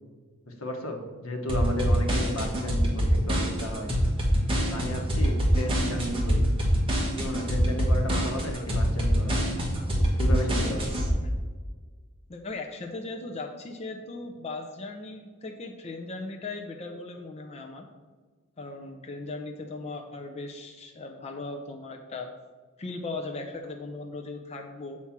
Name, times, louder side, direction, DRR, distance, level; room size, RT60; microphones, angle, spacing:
voice 1, 0.5-3.9 4.7-6.4 7.2-9.5 9.9-10.8, equal, 75° left, 3 dB, 1.2 m, -33 dB
sound 1, 1.5-11.1, equal, 25° right, 1.3 m, -25 dB
voice 2, 10.7-11.0 12.3-17.9 18.6-22.3 22.8-25.0, left 3 dB, 30° left, 3 dB, 0.5 m, -38 dB
7.3 x 4.4 x 5.8 m, 1.5 s
head